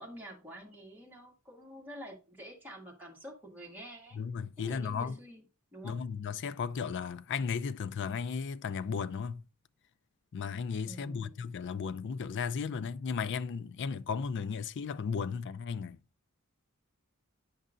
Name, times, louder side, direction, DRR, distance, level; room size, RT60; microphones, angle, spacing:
voice 1, 0.0-4.2 4.6-5.4 5.7-6.0 10.9-11.4, equal, 10° right, 1.9 m, -48 dB
voice 2, 4.1-5.2 5.8-9.4 10.3-16.0, left 6 dB, 55° left, 0.4 m, -35 dB
10.0 x 5.4 x 2.5 m
head